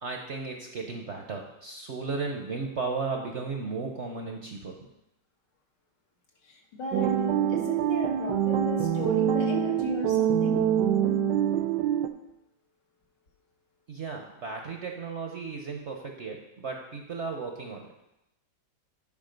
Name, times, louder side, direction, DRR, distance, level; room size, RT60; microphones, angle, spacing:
voice 1, 0.0-4.8 13.9-17.9, right 4 dB, 50° right, 2 dB, 0.9 m, -35 dB
voice 2, 6.4-7.2 7.5-10.6, left 3 dB, 70° left, -1 dB, 2.1 m, -37 dB
sound 1, 6.9-12.1, right 9 dB, 75° right, 1.1 m, -25 dB
9.8 x 5.1 x 5.2 m, 0.88 s
omnidirectional pair, 2.0 m